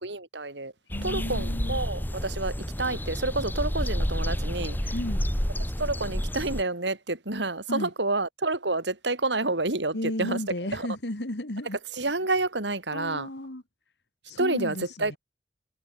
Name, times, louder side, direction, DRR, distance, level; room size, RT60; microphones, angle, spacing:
voice 1, 0.0-0.7 1.0-4.9 5.8-10.4 10.7-10.9 12.0-13.3 14.4-15.2, right 2 dB, 85° right, 4.1 m, -29 dB
voice 2, 0.9-1.8 4.9-5.2 7.7-7.9 9.9-11.8 12.9-13.6 14.3-15.2, left 1 dB, 75° left, 2.9 m, -33 dB
sound 1, 0.9-6.6, equal, 10° left, 2.5 m, -30 dB
head